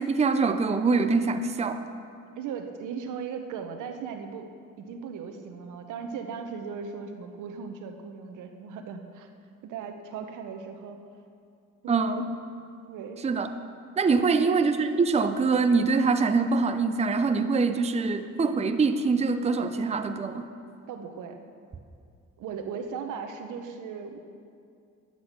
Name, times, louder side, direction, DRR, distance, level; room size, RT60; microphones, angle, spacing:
voice 1, 0.0-1.8 11.9-12.2 13.2-13.5 14.0-20.5, right 4 dB, 20° right, 8 dB, 0.6 m, -24 dB
voice 2, 2.4-4.5 4.8-9.3 9.6-11.0 11.8-12.1 12.9-13.3 14.3-14.5 20.9-21.4 22.4-24.2, right 6 dB, 85° right, 6 dB, 1.0 m, -37 dB
10.5 x 8.0 x 6.6 m, 2.4 s
cardioid pair, 90°, 30 cm